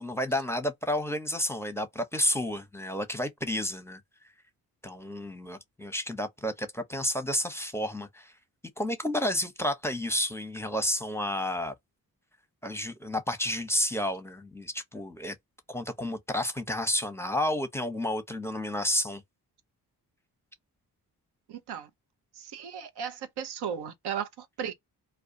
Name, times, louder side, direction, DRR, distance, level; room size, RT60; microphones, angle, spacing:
voice 1, 0.0-4.0 4.8-8.3 8.8-11.7 12.6-15.3 15.7-19.2, left 1 dB, 5° left, 0.7 m, -31 dB
voice 2, 21.5-21.9 22.4-24.7, right 8 dB, 75° right, 0.7 m, -36 dB
2.3 x 2.2 x 2.6 m
supercardioid pair, 50°, 39 cm